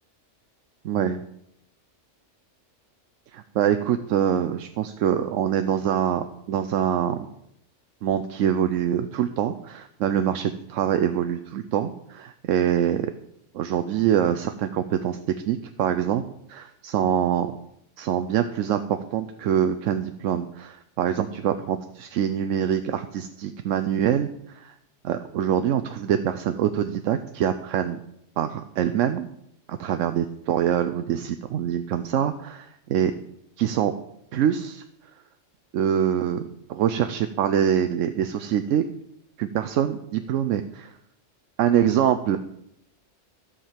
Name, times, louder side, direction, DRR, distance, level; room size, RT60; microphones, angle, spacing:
voice 1, 0.8-1.2 3.3-7.2 8.0-13.1 13.5-15.2 15.5-16.2 16.5-17.5 18.0-24.7 25.0-28.0 28.4-29.3 29.7-33.1 33.6-33.9 34.3-34.8 35.7-36.4 36.7-38.8 39.4-40.9 41.6-42.4, right 9 dB, 85° right, 9 dB, 1.0 m, -24 dB
12.0 x 5.0 x 7.4 m, 0.77 s
omnidirectional pair, 1.3 m